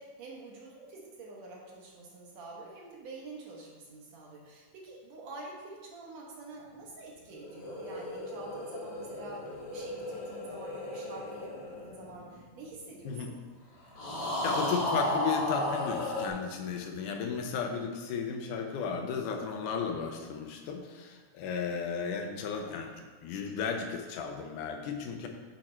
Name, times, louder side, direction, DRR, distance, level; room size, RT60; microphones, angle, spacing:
voice 1, 0.0-13.4, right 2 dB, 65° right, -2 dB, 2.3 m, -47 dB
sound 1, 7.3-12.9 14.0-16.3, left 1 dB, 50° left, 1.6 m, -35 dB
voice 2, 14.4-23.0 23.2-25.3, left 6 dB, 85° left, 4 dB, 2.3 m, -34 dB
8.7 x 4.4 x 4.4 m, 1.5 s
omnidirectional pair, 3.5 m